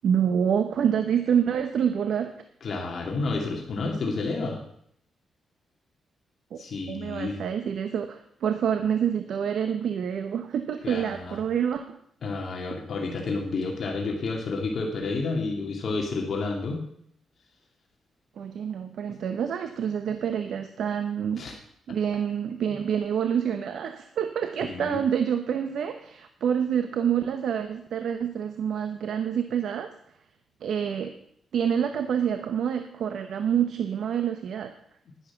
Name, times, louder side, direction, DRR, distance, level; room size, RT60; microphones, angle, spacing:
voice 1, 0.0-2.3 6.5-6.6 6.9-12.0 18.4-21.4 21.9-29.9 30.6-31.1 31.5-34.7, right 8 dB, 75° right, 8 dB, 0.9 m, -27 dB
voice 2, 2.6-4.6 6.6-7.4 10.8-11.4 12.2-16.8 21.4-21.5 22.7-22.8 24.6-25.0, left 3 dB, 55° left, 1 dB, 2.3 m, -30 dB
11.0 x 10.5 x 5.9 m, 0.69 s
cardioid pair, 115°, 0 cm